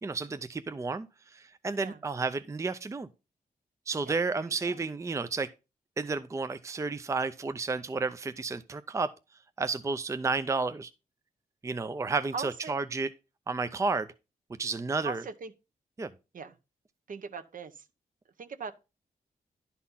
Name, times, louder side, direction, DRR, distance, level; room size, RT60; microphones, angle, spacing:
voice 1, 0.0-3.1 3.9-5.5 6.0-9.1 9.6-10.9 11.6-13.1 13.5-14.1 14.6-15.2 16.0-16.1, right 4 dB, 20° right, 0.5 m, -31 dB
voice 2, 4.3-4.8 12.3-12.8 15.0-15.5 16.3-16.5 17.1-17.7 18.4-18.7, right 5 dB, 60° right, 0.9 m, -39 dB
11.0 x 4.2 x 5.6 m
wide cardioid pair, 120°, 15 cm